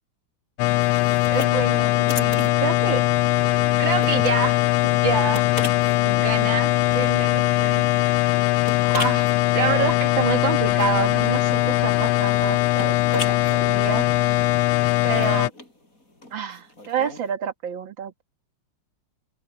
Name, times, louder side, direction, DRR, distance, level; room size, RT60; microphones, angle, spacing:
sound 1, 0.6-15.5, left 17 dB, 80° left, 1.4 m, -20 dB
sound 2, 0.8-17.3, left 2 dB, 40° left, 7.6 m, -40 dB
voice 1, 1.2-3.0 3.8-5.5 6.0-8.3 8.8-14.0 15.0-15.5 16.3-18.2, right 7 dB, 65° right, 2.4 m, -28 dB
open air
omnidirectional pair, 2.2 m